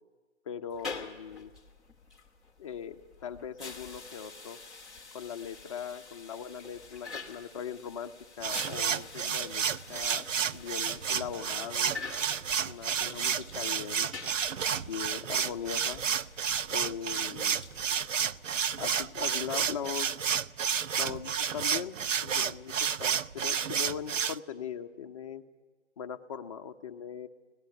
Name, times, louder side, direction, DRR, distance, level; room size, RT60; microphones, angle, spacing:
voice 1, 0.5-1.5 2.6-4.6 5.1-12.0 12.6-14.1 14.8-16.1 16.7-17.6 18.8-20.1 21.0-22.7 23.0-25.4 26.0-27.3, left 8 dB, 25° left, 5 dB, 0.8 m, -40 dB
sound 1, 0.7-20.3, left 4 dB, ahead, 0.7 m, -47 dB
sound 2, 8.4-24.4, right 7 dB, 80° right, 0.6 m, -31 dB
24.5 x 17.5 x 7.0 m, 1.4 s
figure-of-eight pair, 145°, 37 cm